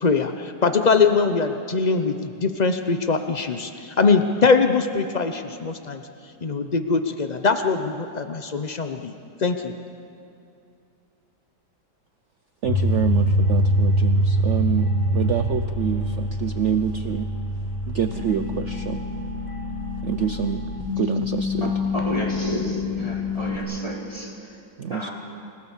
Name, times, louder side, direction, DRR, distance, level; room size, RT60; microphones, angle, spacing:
voice 1, 0.0-6.0 6.4-9.1 9.4-9.7, left 4 dB, 75° left, 7 dB, 0.4 m, -22 dB
sound 1, 12.6-23.6, equal, 60° left, 2.4 m, -24 dB
voice 2, 12.6-17.3 17.9-19.0 20.0-20.6 21.0-21.7 22.6-22.8 24.8-25.1, right 8 dB, 70° right, 9 dB, 0.6 m, -27 dB
voice 3, 22.1-22.7 23.0-24.3 24.9-25.1, equal, 15° left, -3 dB, 3.9 m, -31 dB
28.5 x 17.5 x 7.3 m, 2.5 s
omnidirectional pair, 2.0 m